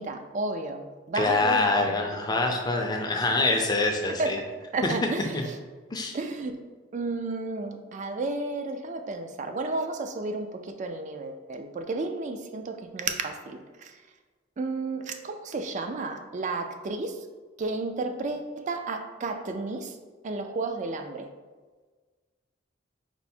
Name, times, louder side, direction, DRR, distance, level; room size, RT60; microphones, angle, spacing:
voice 1, 0.0-2.4 4.1-4.3 4.7-5.6 6.1-6.6 6.9-13.9 14.6-17.3 17.6-20.0 20.2-21.3, right 3 dB, 40° right, 6 dB, 0.3 m, -32 dB
voice 2, 1.1-4.4 4.8-4.9 5.3-5.4 5.9-6.2, left 2 dB, 20° left, 2 dB, 0.4 m, -25 dB
4.5 x 2.0 x 4.2 m, 1.4 s
head